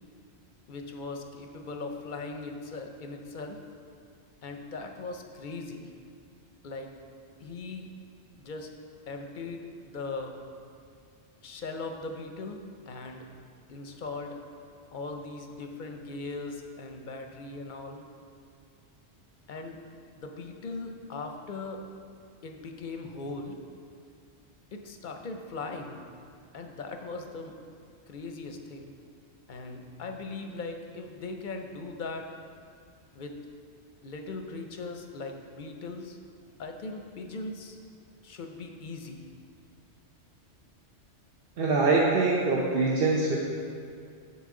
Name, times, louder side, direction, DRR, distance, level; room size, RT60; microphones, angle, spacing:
voice 1, 0.7-3.6 4.4-5.9 6.6-6.9 7.4-7.9 8.3-8.7 9.1-10.4 11.4-13.3 13.7-14.4 14.9-18.0 19.5-19.8 20.1-21.8 22.4-23.6 24.7-26.1 26.5-27.6 28.1-28.9 29.5-32.3 33.1-33.4 34.0-36.2 36.6-37.8 38.2-39.3, left 3 dB, 55° left, 4 dB, 0.6 m, -39 dB
voice 2, 41.6-43.4, right 3 dB, 60° right, -3 dB, 0.9 m, -24 dB
7.6 x 7.1 x 3.7 m, 2.3 s
omnidirectional pair, 1.2 m